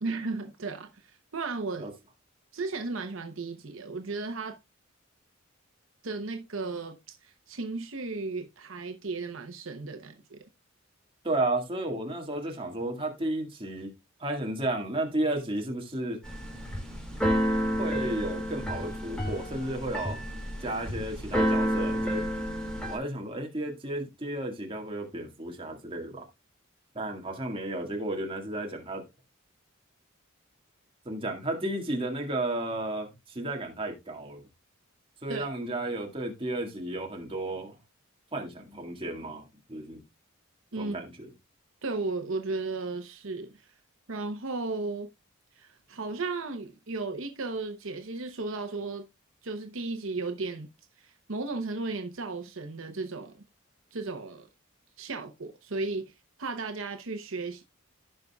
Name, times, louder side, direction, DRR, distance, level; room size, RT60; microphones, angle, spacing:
voice 1, 0.0-1.9 2.5-4.6 6.0-10.4 35.3-35.5 40.7-41.0 41.8-43.7 44.1-45.1 45.5-49.0 49.4-50.7 51.0-53.4 53.9-54.5 55.0-57.6, right 3 dB, 65° right, 0.9 m, -35 dB
voice 2, 11.2-13.9 14.2-16.2 17.8-20.2 20.6-22.2 22.9-26.3 27.0-29.0 31.1-34.4 35.2-37.7 38.3-39.4 39.7-40.0 40.8-41.3, right 1 dB, 25° right, 1.9 m, -33 dB
Keyboard (musical), 16.2-23.0, equal, 5° left, 2.2 m, -30 dB
15.5 x 5.3 x 2.3 m
head